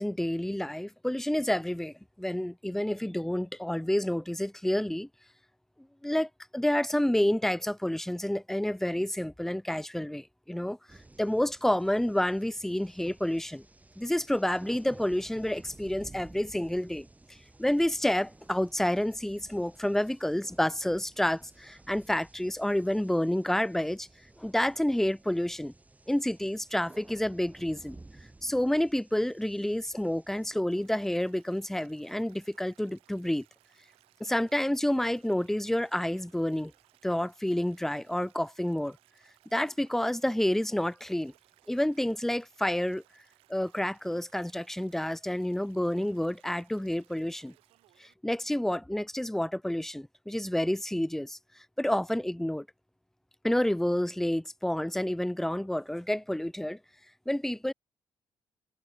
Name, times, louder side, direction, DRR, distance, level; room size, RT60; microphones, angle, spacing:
voice 1, 0.0-5.1 6.0-10.8 11.2-13.6 14.0-17.1 17.6-24.1 24.4-25.7 26.1-28.0 28.4-33.4 34.2-36.7 37.0-39.0 39.5-41.3 41.7-43.0 43.5-47.5 48.0-51.4 51.8-52.6 53.4-56.8 57.3-57.7, left 1 dB, 5° left, 1.1 m, -29 dB
sound 1, 10.9-30.6, right 2 dB, 15° right, 7.1 m, -54 dB
Stream, 30.7-48.1, right 18 dB, 85° right, 6.8 m, -65 dB
supercardioid pair, 75°, 10 cm